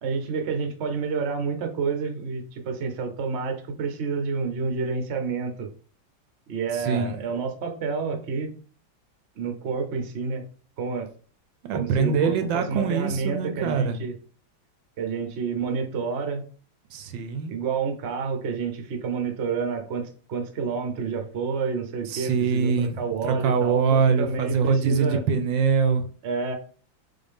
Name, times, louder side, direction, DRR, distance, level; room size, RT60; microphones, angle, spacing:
voice 1, 0.0-5.7 6.5-8.5 9.3-10.4 10.8-11.1 11.7-14.1 15.0-16.4 17.5-25.2 26.2-26.5, right 5 dB, 50° right, 5 dB, 0.8 m, -29 dB
voice 2, 6.7-7.2 11.6-14.0 16.9-17.6 22.1-26.1, right 6 dB, 80° right, 9 dB, 1.3 m, -24 dB
3.9 x 3.9 x 3.5 m, 0.40 s
omnidirectional pair, 2.2 m